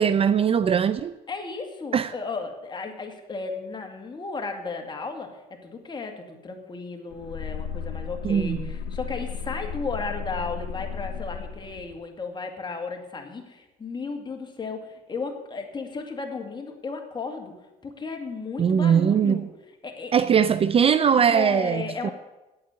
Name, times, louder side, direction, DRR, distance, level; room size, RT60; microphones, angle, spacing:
voice 1, 0.0-1.1 1.9-2.1 8.2-8.7 18.6-19.5 20.1-22.1, right 7 dB, 35° right, 15 dB, 0.4 m, -21 dB
voice 2, 1.3-17.5 17.8-19.5 19.8-20.3 21.3-22.1, left 4 dB, 25° left, 3 dB, 2.2 m, -34 dB
sound 1, 7.1-12.0, left 6 dB, 80° left, 1.2 m, -34 dB
8.8 x 8.6 x 9.6 m, 1.0 s
cardioid pair, 110°, 17 cm